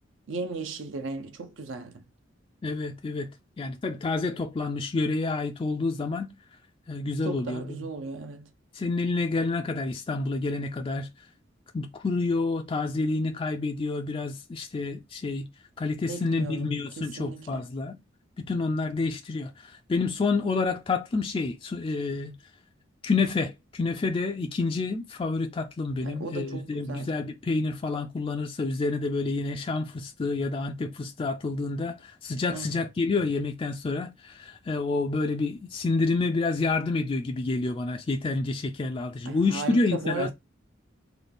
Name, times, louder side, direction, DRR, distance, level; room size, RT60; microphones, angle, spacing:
voice 1, 0.3-2.0 7.2-8.5 16.1-16.7 17.0-17.6 26.0-27.1 32.5-32.8 39.3-40.3, right 3 dB, 70° right, 0.6 m, -36 dB
voice 2, 2.6-3.3 3.6-6.3 6.9-7.8 8.7-11.1 11.7-15.5 15.8-18.0 18.4-22.3 23.0-40.3, left 3 dB, 25° left, 0.3 m, -28 dB
3.9 x 2.2 x 3.4 m
head